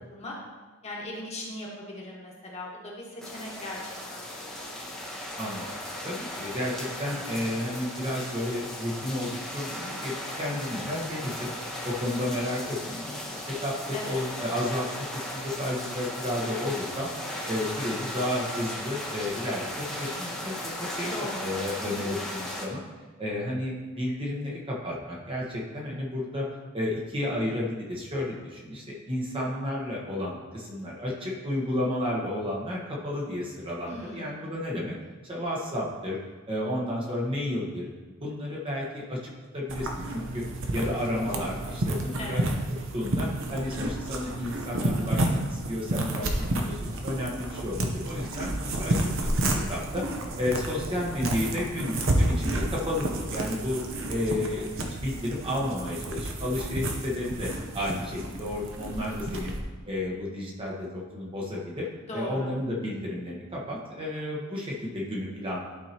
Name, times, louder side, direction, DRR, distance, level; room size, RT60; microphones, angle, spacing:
voice 1, 0.8-4.3 13.9-14.2 21.1-21.5 33.9-34.4 42.2-42.5 62.1-62.5, left 1 dB, 30° left, -4 dB, 1.6 m, -38 dB
sound 1, 3.2-22.7, left 1 dB, ahead, 1.1 m, -36 dB
voice 2, 5.4-5.7 6.0-11.5 11.8-13.2 13.5-17.1 17.5-22.8 23.2-26.5 26.7-34.9 35.2-36.2 36.5-37.9 38.2-40.4 40.7-42.4 42.9-50.0 50.4-53.8 54.1-54.7 55.0-59.5 59.9-61.9 62.1-65.6, left 1 dB, 25° right, -4 dB, 1.2 m, -32 dB
sound 2, 39.7-59.6, right 1 dB, 65° right, 0.9 m, -30 dB
12.0 x 4.6 x 2.9 m, 1.4 s
head